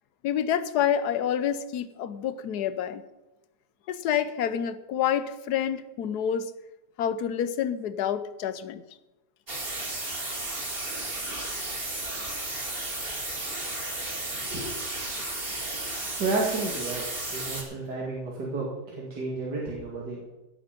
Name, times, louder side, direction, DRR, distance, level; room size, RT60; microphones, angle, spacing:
voice 1, 0.2-3.0 3.9-6.5 7.0-8.8, left 9 dB, 80° left, 13 dB, 1.4 m, -28 dB
sound 1, 9.5-17.6, right 2 dB, 35° right, 3.0 m, -33 dB
voice 2, 14.4-14.9 16.2-17.0 17.3-20.3, right 3 dB, 90° right, -3 dB, 2.9 m, -31 dB
16.5 x 8.6 x 5.2 m, 1.1 s
omnidirectional pair, 1.7 m